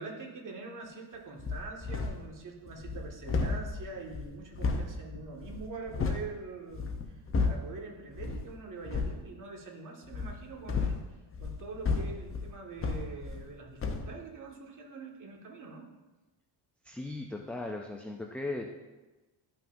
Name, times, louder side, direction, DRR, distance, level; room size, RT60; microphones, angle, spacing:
voice 1, 0.0-11.0 11.4-15.9, right 4 dB, 40° right, -1 dB, 1.7 m, -44 dB
sound 1, 1.4-2.3 2.7-6.3 6.7-7.8 8.1-8.5 8.8-9.2 10.1-13.5 13.8-14.1, left 4 dB, 30° left, 0.8 m, -33 dB
voice 2, 16.8-18.7, left 2 dB, 5° left, 1 dB, 0.3 m, -37 dB
12.5 x 5.9 x 2.6 m, 1.1 s
cardioid pair, 120°, 48 cm